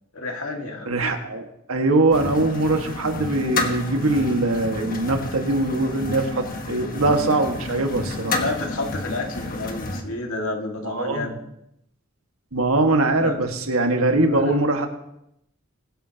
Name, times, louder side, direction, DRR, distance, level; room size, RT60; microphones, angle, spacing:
voice 1, 0.1-1.0 8.4-11.4 13.2-13.4 14.2-14.5, left 2 dB, 90° left, 2 dB, 2.0 m, -30 dB
voice 2, 0.9-8.4 10.8-11.3 12.5-14.9, right 2 dB, 85° right, 4 dB, 1.7 m, -22 dB
sound 1, 2.1-10.0, left 2 dB, 45° left, 1.5 m, -30 dB
22.0 x 10.5 x 2.9 m, 0.80 s
head